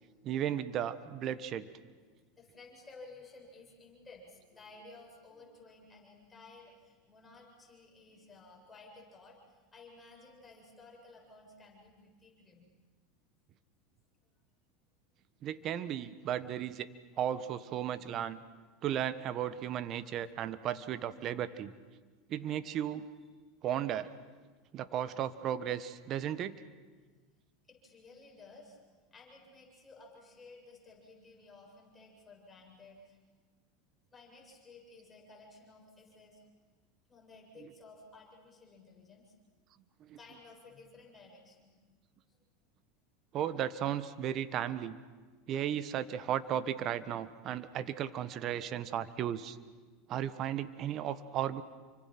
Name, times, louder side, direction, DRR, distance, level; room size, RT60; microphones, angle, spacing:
voice 1, 0.2-1.7 15.4-16.9 17.2-18.4 18.8-21.7 22.3-23.1 23.6-24.1 24.7-26.5 40.1-40.2 43.3-45.0 45.5-49.6 50.1-51.6, right 10 dB, 45° right, 14 dB, 1.3 m, -35 dB
voice 2, 1.7-12.7 27.7-33.2 34.1-36.5 37.1-39.3 40.2-41.8 42.3-42.4, left 3 dB, 20° left, -1 dB, 7.4 m, -55 dB
28.5 x 25.0 x 6.1 m, 1.4 s
hypercardioid pair, 100°, 0 cm